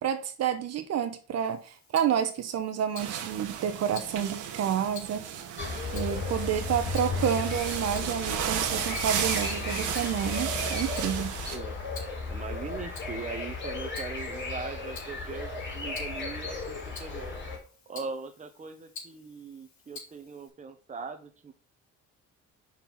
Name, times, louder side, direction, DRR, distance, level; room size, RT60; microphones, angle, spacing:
voice 1, 0.0-5.3 5.9-11.3, right 9 dB, 60° right, 0.9 m, -29 dB
Tick-tock, 1.4-20.5, left 4 dB, 70° left, 3.7 m, -51 dB
sound 1, 3.0-11.6, right 8 dB, 80° right, 1.4 m, -34 dB
sound 2, 5.6-17.6, left 3 dB, 40° left, 3.1 m, -35 dB
voice 2, 12.3-17.2 17.9-21.5, right 4 dB, 25° right, 1.0 m, -40 dB
5.6 x 4.5 x 5.9 m
cardioid pair, 115°, 29 cm